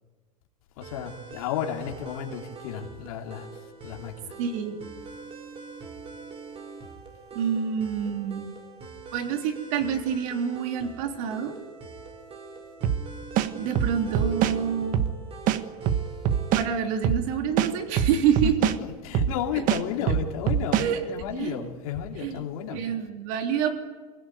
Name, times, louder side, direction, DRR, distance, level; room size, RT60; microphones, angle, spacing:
voice 1, 0.8-4.4 18.4-22.8, left 9 dB, 75° left, 3.0 m, -33 dB
sound 1, 0.8-16.8, right 4 dB, 30° right, 4.4 m, -43 dB
voice 2, 4.4-4.8 7.3-8.5 9.1-11.6 13.5-15.1 16.5-18.5 19.5-19.6 20.8-21.0 21.4-21.6 22.2-22.4 22.7-23.7, right 8 dB, 65° right, 3.5 m, -27 dB
sound 2, 12.8-13.0 13.4-14.6 14.9-15.1 15.5-16.7 17.0-17.2 17.6-18.8 19.1-19.3 19.7-20.9, right 10 dB, 45° right, 1.3 m, -23 dB
23.0 x 16.5 x 9.3 m
supercardioid pair, 125°, 19 cm